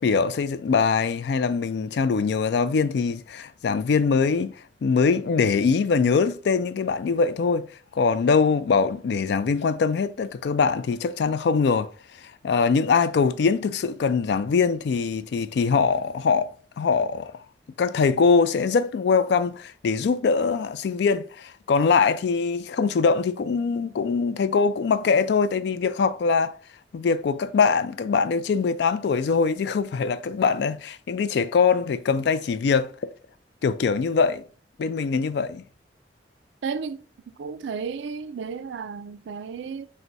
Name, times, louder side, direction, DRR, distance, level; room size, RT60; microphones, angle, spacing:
voice 1, 0.0-4.6 4.8-7.7 7.9-11.9 12.4-17.4 17.8-26.6 26.9-32.9 33.6-34.4 34.8-35.6, left 5 dB, 65° left, 0.3 m, -22 dB
voice 2, 36.6-37.0 37.4-39.9, right 5 dB, 80° right, 0.3 m, -33 dB
3.9 x 2.1 x 4.5 m
head